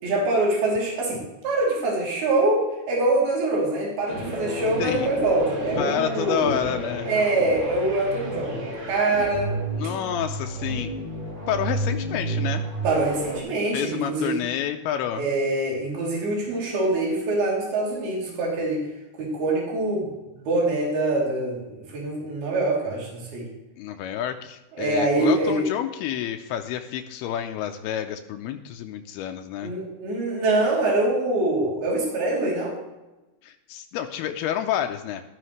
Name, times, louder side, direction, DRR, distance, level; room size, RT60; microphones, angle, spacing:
voice 1, 0.0-6.5 7.1-8.6 8.9-9.5 12.8-14.4 15.1-18.8 19.2-20.1 20.4-23.5 24.8-25.6 29.6-32.8, right 2 dB, 75° right, -3 dB, 5.1 m, -24 dB
sound 1, 4.1-13.4, right 1 dB, 35° right, 3.7 m, -31 dB
voice 2, 4.8-5.1 5.8-7.1 9.8-10.9 11.5-12.7 13.7-15.3 23.8-29.7 33.4-35.3, left 10 dB, 85° left, 5 dB, 2.6 m, -29 dB
13.5 x 12.5 x 3.2 m, 1.0 s
omnidirectional pair, 4.5 m